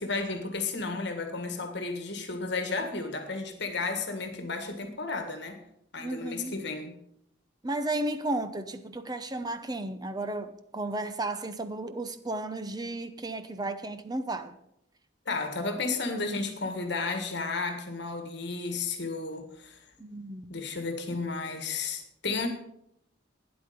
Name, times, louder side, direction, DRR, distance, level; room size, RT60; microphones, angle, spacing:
voice 1, 0.0-5.6 5.9-6.9 15.2-19.8 20.5-22.5, left 3 dB, 60° left, 1.8 m, -33 dB
voice 2, 6.0-6.5 7.6-14.6 20.0-20.6, right 2 dB, 20° right, 0.7 m, -34 dB
12.5 x 9.9 x 5.3 m
head